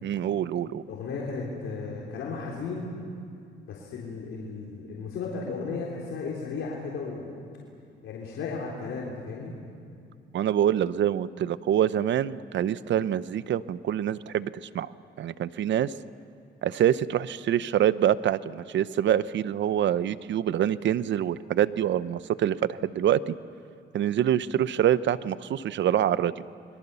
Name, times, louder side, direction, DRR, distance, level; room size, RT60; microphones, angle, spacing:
voice 1, 0.0-0.8 10.3-14.9 15.2-15.9 16.6-23.3 23.9-26.4, right 10 dB, 65° right, 16 dB, 0.8 m, -25 dB
voice 2, 0.9-2.9 3.7-7.4 8.0-9.5, left 4 dB, 80° left, -3 dB, 3.7 m, -35 dB
29.0 x 23.0 x 7.0 m, 2.5 s
cardioid pair, 90°, 20 cm